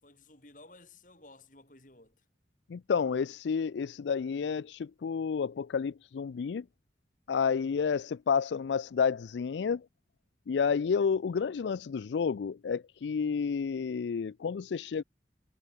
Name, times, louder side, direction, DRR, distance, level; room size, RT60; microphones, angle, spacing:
voice 1, 0.0-2.2, left 2 dB, 45° left, 4.8 m, -55 dB
voice 2, 2.7-6.6 7.3-9.9 10.5-15.0, left 6 dB, 85° left, 0.4 m, -30 dB
head